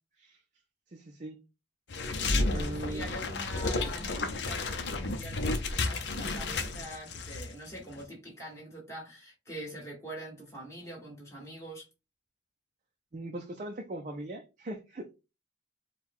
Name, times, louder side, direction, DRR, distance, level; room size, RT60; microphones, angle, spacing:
voice 1, 0.9-1.4 2.5-3.1 13.1-15.1, right 1 dB, 40° right, 0.5 m, -40 dB
sound 1, 1.9-7.5 7.8-8.0, left 3 dB, 65° left, 0.7 m, -32 dB
voice 2, 2.5-11.9, right 1 dB, 15° left, 1.6 m, -44 dB
4.4 x 2.3 x 3.6 m
head